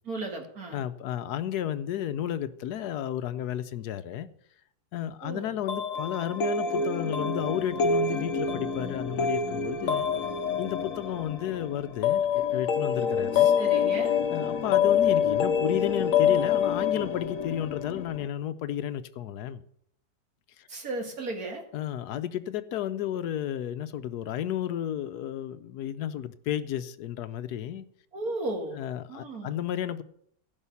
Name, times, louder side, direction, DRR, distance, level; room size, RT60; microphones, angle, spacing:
voice 1, 0.0-0.8 5.2-5.5 13.3-14.1 20.7-21.6 28.1-28.8 29.1-29.6, right 2 dB, 60° right, 2.5 m, -35 dB
voice 2, 0.7-4.3 4.9-10.1 10.6-13.5 14.3-19.6 20.6-20.7 21.7-27.9 28.7-30.0, left 10 dB, 75° left, 1.2 m, -32 dB
sound 1, 5.7-18.3, left 7 dB, 60° left, 1.1 m, -26 dB
16.0 x 5.6 x 7.0 m
omnidirectional pair, 1.8 m